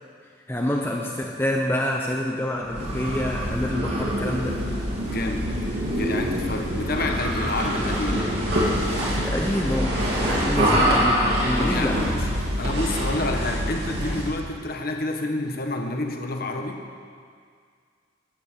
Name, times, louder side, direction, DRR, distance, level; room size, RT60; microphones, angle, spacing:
voice 1, 0.5-4.6 9.1-12.0, left 1 dB, 10° left, -1 dB, 0.8 m, -27 dB
sound 1, 2.6-14.4, equal, 55° right, 3.1 m, -25 dB
voice 2, 5.0-5.5 5.9-8.3 11.6-12.3 12.6-16.8, left 2 dB, 50° left, 3 dB, 1.2 m, -29 dB
12.0 x 9.0 x 7.5 m, 2.1 s
head